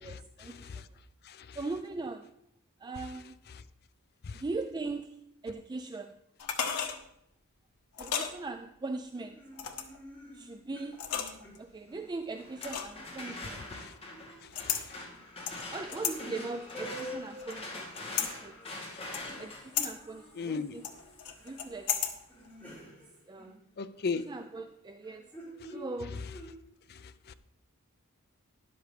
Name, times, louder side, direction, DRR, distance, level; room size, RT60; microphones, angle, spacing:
voice 1, 0.0-0.8 1.6-2.3 2.8-3.4 4.3-5.2 5.4-6.2 8.0-9.4 10.3-11.0 11.6-13.7 15.7-18.5 19.4-20.9 21.4-22.0 22.8-23.0 23.3-23.6 24.1-25.2 25.7-26.2, right 3 dB, 20° right, 0.3 m, -40 dB
sound 1, 6.4-7.0 7.9-8.3 9.6-10.0 10.9-11.6 12.6-13.1 14.5-14.8 15.5-16.2 16.7-17.5 18.0-18.3 19.1-19.5 19.7-19.9 20.8-22.1 22.5-22.6, left 8 dB, 85° left, 1.2 m, -33 dB
sound 2, 9.1-12.1 12.5-13.6 14.1-14.4 15.0-15.5 15.8-20.9 21.3-21.8 22.1-24.3 25.0-26.5, equal, 5° left, 4.4 m, -48 dB
sound 3, 12.3-22.2, left 2 dB, 25° left, 2.0 m, -45 dB
voice 2, 20.4-20.8 23.8-24.3 27.3-27.4, left 4 dB, 45° left, 0.5 m, -34 dB
13.0 x 10.5 x 3.3 m
head